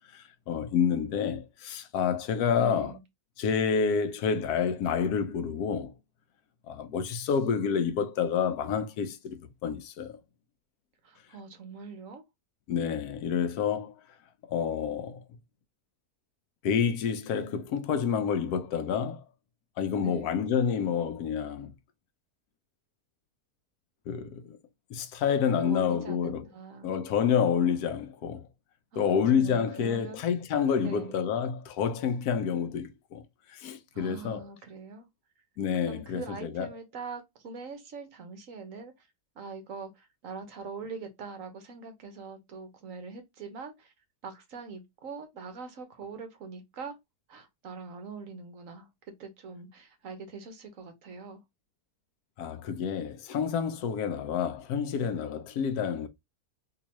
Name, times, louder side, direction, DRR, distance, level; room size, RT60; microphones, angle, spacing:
voice 1, 0.1-2.9 3.4-5.9 6.7-10.2 12.7-13.9 14.5-15.2 16.6-19.2 19.8-21.7 24.1-24.6 24.9-26.5 26.8-28.4 29.0-33.2 33.5-34.4 35.6-36.7 52.4-56.1, left 7 dB, 85° left, 1.2 m, -28 dB
voice 2, 2.5-3.0 11.0-12.2 20.0-20.4 25.6-26.9 28.9-30.2 30.8-31.2 33.9-35.1 35.9-39.1 39.3-43.9 44.2-47.0 47.3-51.4, right 5 dB, 60° right, 1.2 m, -43 dB
3.8 x 2.7 x 3.0 m
omnidirectional pair, 1.6 m